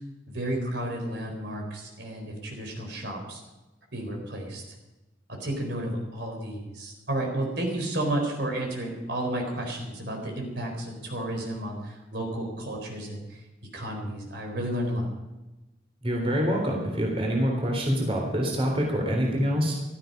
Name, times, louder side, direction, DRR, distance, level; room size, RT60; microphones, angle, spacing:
voice 1, 0.3-3.4 3.9-4.6 5.4-13.2 13.7-15.1, right 1 dB, 65° right, 2 dB, 4.2 m, -32 dB
voice 2, 16.0-19.8, equal, 30° right, 0 dB, 3.5 m, -26 dB
16.0 x 13.5 x 5.3 m, 1.1 s
head